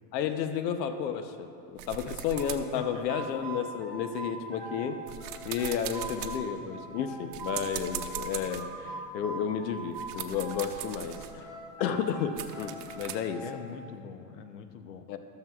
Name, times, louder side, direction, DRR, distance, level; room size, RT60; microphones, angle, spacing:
voice 1, 0.1-5.0 5.4-13.4 15.1-15.2, left 8 dB, 90° left, 8 dB, 0.9 m, -32 dB
sound 1, 1.8-3.7 4.2-13.2, right 10 dB, 65° right, 0.8 m, -42 dB
sound 2, 2.3-4.9 5.2-7.7 8.1-10.7 11.0-13.7, right 3 dB, ahead, 0.9 m, -41 dB
voice 2, 13.4-15.1, left 6 dB, 50° left, 8 dB, 0.7 m, -43 dB
13.5 x 13.0 x 2.4 m, 2.5 s
supercardioid pair, 180°, 49 cm